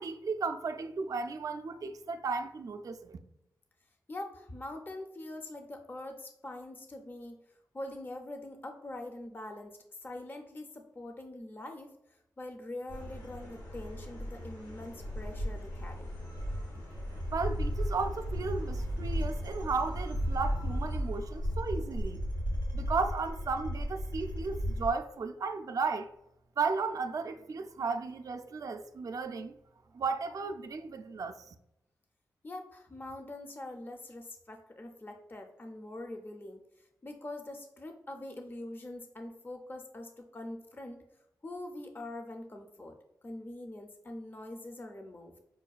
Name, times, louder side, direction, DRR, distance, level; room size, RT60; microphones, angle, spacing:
voice 1, 0.0-3.2 17.3-22.2 22.7-26.1 26.6-29.5 29.9-31.5, right 4 dB, 55° right, 0.3 m, -34 dB
voice 2, 4.1-7.4 7.7-11.9 12.4-16.1 32.4-36.6 37.0-41.0 41.4-43.0 43.2-45.3, left 1 dB, 30° left, 0.5 m, -43 dB
sound 1, 12.9-24.9, equal, 90° left, 1.4 m, -35 dB
5.6 x 2.2 x 2.3 m
cardioid pair, 50°, 7 cm